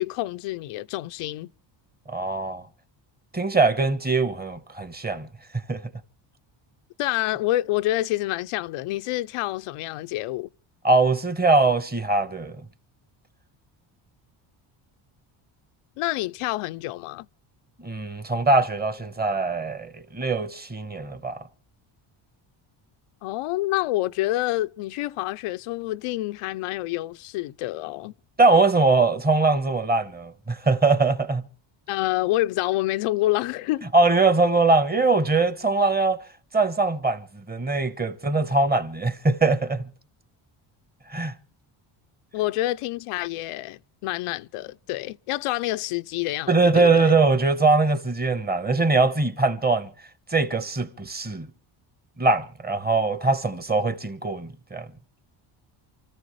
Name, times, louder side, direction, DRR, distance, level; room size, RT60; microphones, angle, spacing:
voice 1, 0.0-1.5 7.0-10.5 16.0-17.3 23.2-28.1 31.9-33.9 42.3-47.1, left 17 dB, 85° left, 0.6 m, -27 dB
voice 2, 2.1-2.7 3.3-5.3 5.7-5.8 10.8-12.7 17.8-21.4 28.4-31.4 33.9-36.2 36.5-39.9 41.1-41.3 46.5-49.9 50.3-51.5 52.2-54.9, right 3 dB, 20° right, 1.1 m, -22 dB
29.0 x 14.0 x 3.1 m
cardioid pair, 125°, 50 cm